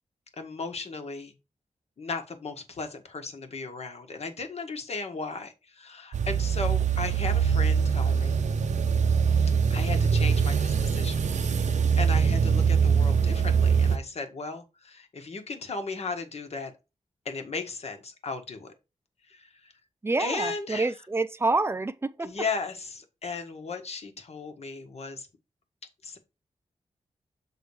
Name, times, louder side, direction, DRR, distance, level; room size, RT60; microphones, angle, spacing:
voice 1, 0.4-1.3 2.0-8.4 9.7-11.2 11.6-16.7 17.2-18.7 19.3-19.7 20.2-21.0 22.2-25.3 26.0-26.2, left 4 dB, 60° left, 1.5 m, -36 dB
sound 1, 6.1-14.0, right 6 dB, 80° right, 0.7 m, -23 dB
voice 2, 20.0-22.3, right 3 dB, 20° right, 0.5 m, -27 dB
7.0 x 3.7 x 4.8 m
wide cardioid pair, 110°, 12 cm